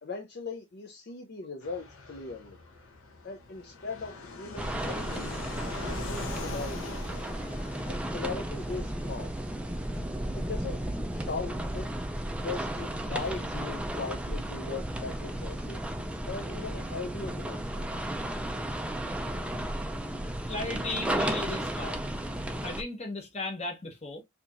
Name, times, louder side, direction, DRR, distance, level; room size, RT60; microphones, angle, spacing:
voice 1, 0.0-2.6 3.2-5.4 5.8-7.0 7.9-9.3 10.3-10.8 11.1-11.9 12.4-15.8 16.3-17.8, left 4 dB, 50° left, 0.5 m, -39 dB
Fixed-wing aircraft airplane, 1.6-20.0, left 3 dB, 75° left, 0.9 m, -46 dB
sound 1, 4.6-22.8, right 1 dB, 5° right, 0.3 m, -34 dB
voice 2, 20.5-22.1 22.6-24.2, left 2 dB, 30° left, 1.0 m, -36 dB
4.3 x 2.8 x 2.5 m
head